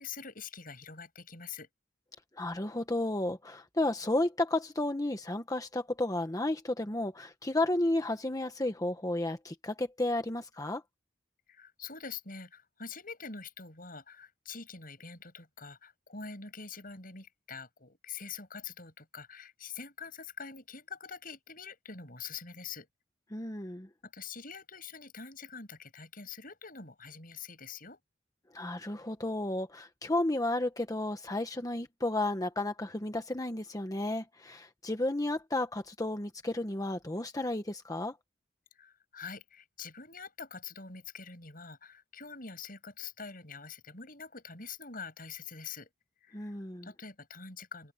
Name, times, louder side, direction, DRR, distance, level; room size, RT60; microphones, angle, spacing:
voice 1, 0.0-1.7 11.5-22.9 24.0-28.0 38.7-45.9 46.2-47.9, left 5 dB, 50° left, 7.8 m, -45 dB
voice 2, 2.4-10.8 23.3-23.9 28.5-38.2 46.3-46.9, left 1 dB, 20° left, 1.1 m, -32 dB
open air
head